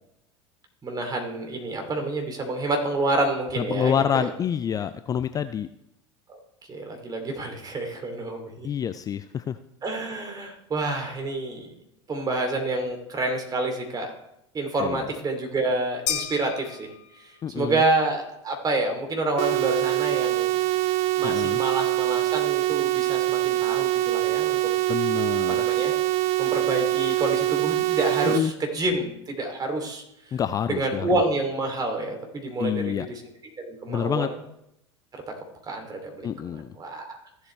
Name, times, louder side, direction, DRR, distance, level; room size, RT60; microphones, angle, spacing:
voice 1, 0.8-4.3 6.3-6.4 6.7-8.7 9.8-11.7 12.1-14.1 14.5-16.9 17.2-20.6 21.2-24.6 25.5-25.9 26.4-30.0 30.3-30.4 30.7-33.2 33.6-34.4 35.6-37.2, right 2 dB, 25° right, 3 dB, 2.7 m, -28 dB
voice 2, 3.6-5.7 8.6-9.6 14.8-15.1 17.4-17.8 21.2-21.6 24.9-25.6 28.3-28.5 30.3-31.2 32.6-33.1 33.9-34.3 36.2-36.8, left 8 dB, 25° left, 12 dB, 0.4 m, -27 dB
sound 1, 16.1-17.5, left 10 dB, 55° left, 1.6 m, -32 dB
sound 2, 19.4-28.4, right 16 dB, 50° right, 0.5 m, -24 dB
15.0 x 7.9 x 3.2 m, 0.81 s
figure-of-eight pair, 75°, 16 cm